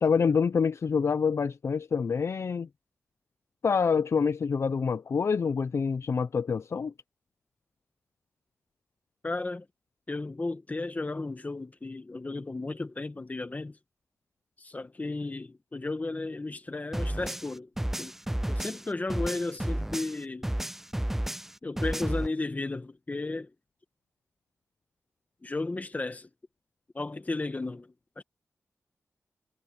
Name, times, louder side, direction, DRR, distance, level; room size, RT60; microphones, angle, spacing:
voice 1, 0.0-2.7 3.6-6.9, left 5 dB, 65° left, 0.6 m, -26 dB
voice 2, 9.2-9.6 10.1-13.8 14.6-17.7 18.0-18.1 18.5-20.5 21.6-23.5 25.4-26.3 26.9-28.2, left 2 dB, 30° left, 1.7 m, -34 dB
sound 1, 16.9-20.2 20.4-22.3, right 1 dB, 5° right, 0.3 m, -32 dB
wide cardioid pair, 75°, 5 cm